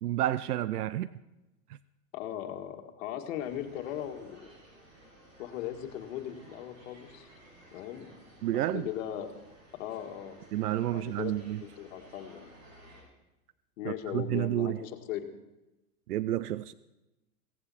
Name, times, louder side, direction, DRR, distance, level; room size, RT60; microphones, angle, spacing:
voice 1, 0.0-1.1 8.4-8.9 10.5-11.6 13.8-14.8 16.1-16.7, right 13 dB, 90° right, 0.6 m, -30 dB
voice 2, 2.1-4.5 5.4-7.3 7.7-8.1 8.5-9.3 9.8-10.4 10.8-11.3 11.8-12.5 13.8-15.3, left 11 dB, 55° left, 1.9 m, -38 dB
sound 1, 3.4-13.0, right 1 dB, 40° right, 7.1 m, -56 dB
17.0 x 14.5 x 4.3 m
hypercardioid pair, 130°, 45 cm